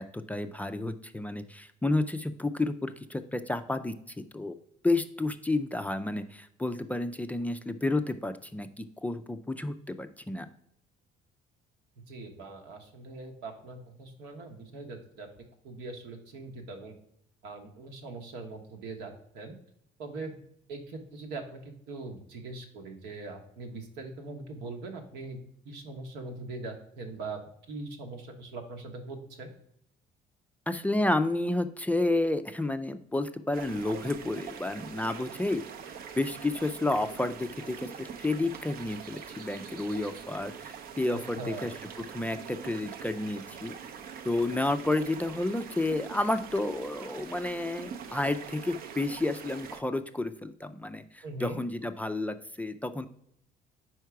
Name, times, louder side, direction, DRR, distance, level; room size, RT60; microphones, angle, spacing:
voice 1, 0.0-4.5 4.8-10.5 30.7-41.7 42.1-43.7 44.2-53.1, left 2 dB, 10° left, 9 dB, 0.3 m, -31 dB
voice 2, 12.1-16.9 17.4-19.5 20.0-20.3 20.7-21.6 21.9-25.4 25.6-27.4 27.7-29.5 41.1-41.7 51.2-51.6, right 3 dB, 85° right, 4 dB, 1.2 m, -41 dB
sound 1, 33.5-49.8, right 7 dB, 60° right, 0.6 m, -44 dB
4.6 x 4.6 x 4.6 m, 0.69 s
cardioid pair, 110°, 17 cm